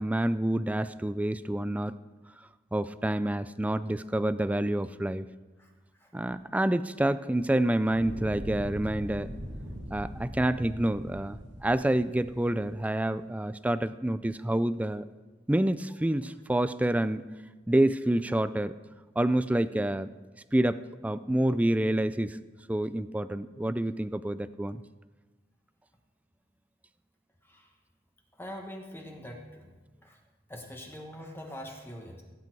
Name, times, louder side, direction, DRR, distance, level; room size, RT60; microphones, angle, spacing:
voice 1, 0.0-1.9 2.7-5.3 6.1-9.3 9.9-15.0 15.5-17.2 17.7-18.7 19.2-20.1 20.5-22.4 22.7-24.8, right 1 dB, 10° right, 14 dB, 0.3 m, -28 dB
Fire, 7.8-13.0, equal, 75° right, 2.7 m, -41 dB
voice 2, 28.4-29.6 30.0-30.2 30.5-32.2, equal, 10° left, 1 dB, 1.2 m, -43 dB
16.5 x 8.4 x 4.6 m, 1.2 s
head